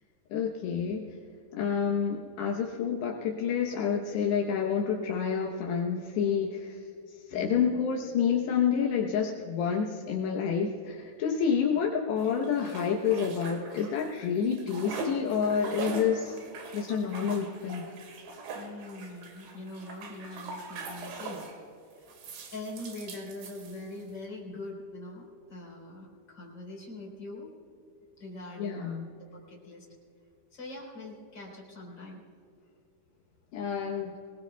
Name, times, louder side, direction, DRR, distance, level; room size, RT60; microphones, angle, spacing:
voice 1, 0.3-1.1 1.5-6.8 7.3-16.4 16.7-17.9 28.6-29.1 33.5-34.2, left 7 dB, 75° left, -1 dB, 3.1 m, -28 dB
voice 2, 7.3-7.8 18.5-21.4 21.9-22.2 22.5-27.5 28.2-28.9 29.3-29.9 30.5-32.2, left 2 dB, 25° left, -2 dB, 4.2 m, -43 dB
sound 1, 12.2-14.1 14.4-21.6 22.1-24.1, right 3 dB, 70° right, 3.8 m, -41 dB
24.5 x 20.0 x 2.3 m, 2.6 s
omnidirectional pair, 5.1 m